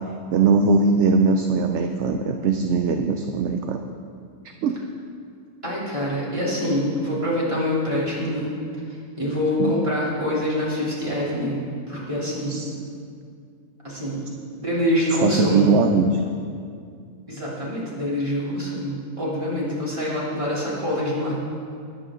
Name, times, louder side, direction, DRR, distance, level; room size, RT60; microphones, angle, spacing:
voice 1, 0.3-3.8 4.6-4.8 9.6-9.8 12.5-12.7 15.2-16.1, right 4 dB, 65° right, 5 dB, 0.8 m, -20 dB
voice 2, 5.6-8.5 9.2-12.5 13.8-14.2 14.6-15.7 17.3-21.4, left 1 dB, 20° right, -7 dB, 3.2 m, -25 dB
20.0 x 8.5 x 3.8 m, 2.3 s
omnidirectional pair, 1.5 m